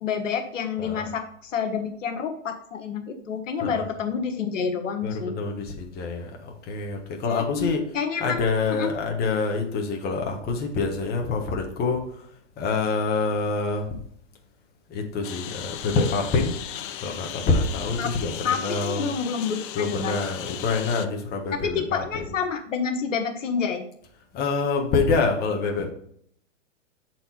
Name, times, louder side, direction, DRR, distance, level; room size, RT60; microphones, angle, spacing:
voice 1, 0.0-5.3 7.2-8.9 18.0-18.1 18.4-20.2 21.6-23.8, left 6 dB, 80° left, 6 dB, 1.2 m, -28 dB
voice 2, 0.8-1.1 3.6-3.9 5.0-7.8 8.2-12.0 12.6-13.9 14.9-16.6 17.0-19.1 19.7-22.4 24.3-25.9, left 4 dB, 25° left, 2 dB, 1.3 m, -26 dB
Engine, 15.2-21.1, left 10 dB, 45° left, 0.6 m, -37 dB
7.5 x 4.5 x 4.3 m, 0.67 s
hypercardioid pair, 125°, 37 cm